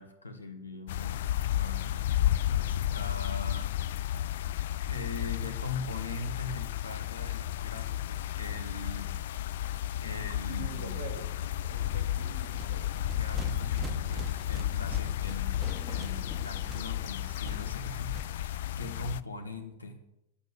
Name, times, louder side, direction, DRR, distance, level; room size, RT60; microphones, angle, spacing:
voice 1, 0.0-2.0 2.6-3.7 4.8-9.2 10.0-10.9 13.1-15.6 15.8-20.0, left 3 dB, 80° left, 6 dB, 1.7 m, -41 dB
sound 1, 0.9-19.2, left 12 dB, 55° left, 0.4 m, -32 dB
sound 2, 6.3-6.4 6.6-6.7 6.9-7.0 7.1-10.4 10.7-11.1 11.4-18.6, right 4 dB, 25° right, 0.9 m, -46 dB
Sliding door, 9.8-17.7, left 5 dB, 35° left, 2.0 m, -50 dB
voice 2, 10.5-11.3 11.6-13.0 14.7-14.9, right 4 dB, 55° right, 3 dB, 2.5 m, -45 dB
11.5 x 8.2 x 7.7 m, 0.86 s
figure-of-eight pair, 90°, 0 cm